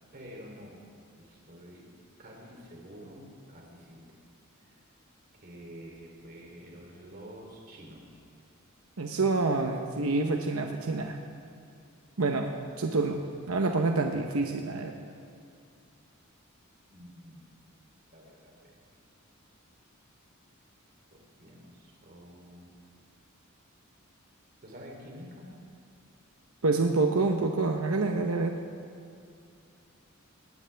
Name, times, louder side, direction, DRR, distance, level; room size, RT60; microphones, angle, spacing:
voice 1, 0.1-0.8 1.2-1.9 2.2-4.0 5.4-8.2 16.9-17.5 18.1-18.7 21.1-22.7 24.6-25.5, equal, 45° right, -1 dB, 3.2 m, -48 dB
voice 2, 9.0-11.2 12.2-12.5 12.8-13.2 13.5-14.9 26.6-28.6, right 3 dB, 90° right, 3 dB, 0.9 m, -27 dB
19.5 x 17.0 x 3.5 m, 2.4 s
head